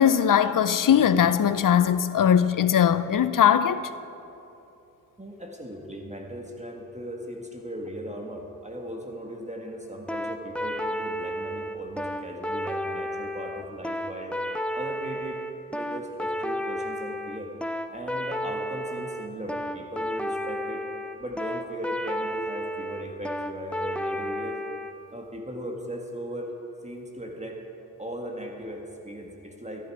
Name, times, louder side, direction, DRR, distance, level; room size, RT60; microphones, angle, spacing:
voice 1, 0.0-3.8, left 9 dB, 65° left, 0.6 m, -20 dB
voice 2, 5.2-14.4 14.7-15.4 15.7-17.5 17.9-20.9 21.2-24.6 25.1-26.5 26.8-27.6 28.0-29.9, equal, 20° right, 1.8 m, -38 dB
sound 1, 10.1-24.9, equal, 5° left, 0.7 m, -32 dB
14.0 x 10.0 x 4.8 m
cardioid pair, 40°, 34 cm